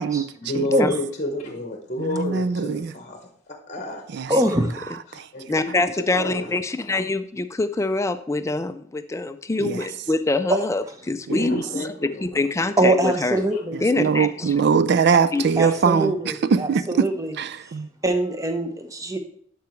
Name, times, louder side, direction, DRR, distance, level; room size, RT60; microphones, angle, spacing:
voice 1, 0.4-3.2 3.5-4.0 5.1-5.8 6.1-6.5 11.3-12.7, left 1 dB, 35° left, 0.9 m, -30 dB
voice 2, 2.0-2.9 4.1-4.3 5.1-5.5 5.8-5.9 9.6-9.9 11.3-11.6 13.7-17.1 17.4-17.9, right 6 dB, 55° right, 0.4 m, -22 dB
voice 3, 4.3-4.8 10.5-10.6 12.8-13.8 15.6-17.3 18.0-19.2, right 1 dB, 15° right, 0.8 m, -23 dB
voice 4, 5.5-11.9 12.2-13.4 13.8-14.5 15.3-15.4, left 2 dB, 15° left, 0.3 m, -25 dB
11.5 x 4.7 x 3.1 m
head